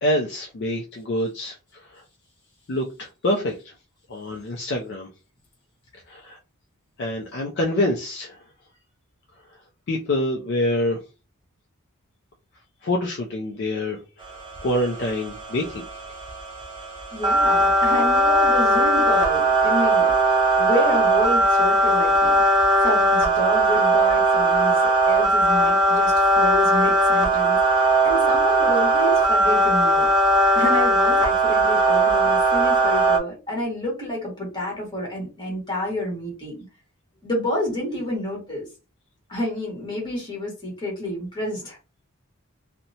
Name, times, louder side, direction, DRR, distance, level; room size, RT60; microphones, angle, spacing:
voice 1, 0.0-1.5 1.9-2.0 2.7-3.7 4.1-5.1 6.1-6.4 7.0-8.4 9.9-11.0 12.8-14.0 14.3-14.4 14.6-16.0, left 1 dB, 50° left, 0.4 m, -26 dB
sound 1, 14.3-33.2, right 1 dB, 20° right, 0.5 m, -19 dB
voice 2, 17.1-30.1 30.5-36.5 37.2-38.7 39.3-41.8, equal, 20° left, 1.3 m, -29 dB
2.7 x 2.1 x 2.7 m
head